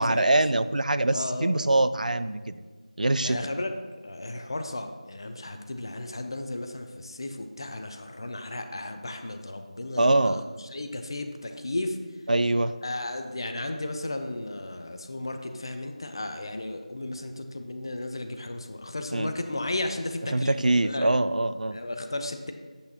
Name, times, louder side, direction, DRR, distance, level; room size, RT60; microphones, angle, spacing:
voice 1, 0.0-2.5 3.0-3.4 10.0-10.4 12.3-12.7 19.1-19.3 20.3-21.8, right 2 dB, 90° right, 13 dB, 0.4 m, -23 dB
voice 2, 1.1-1.6 3.2-3.7 4.0-10.4 10.7-12.0 12.8-20.5 20.8-21.1 21.7-22.5, left 2 dB, 35° left, 6 dB, 0.6 m, -34 dB
8.4 x 7.9 x 2.8 m, 1.4 s
figure-of-eight pair, 175°, 4 cm